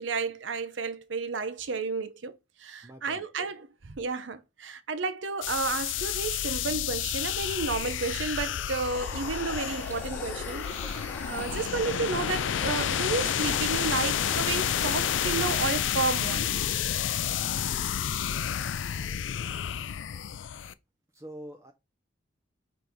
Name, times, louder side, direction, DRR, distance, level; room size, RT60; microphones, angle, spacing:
voice 1, 0.0-16.6, right 4 dB, 80° right, 0.7 m, -32 dB
voice 2, 2.8-3.3 21.1-21.7, right 1 dB, 15° right, 0.5 m, -44 dB
sound 1, 5.4-20.7, left 9 dB, 85° left, 0.4 m, -30 dB
sound 2, 8.9-15.6, left 1 dB, 10° left, 1.3 m, -42 dB
5.3 x 4.0 x 4.6 m
head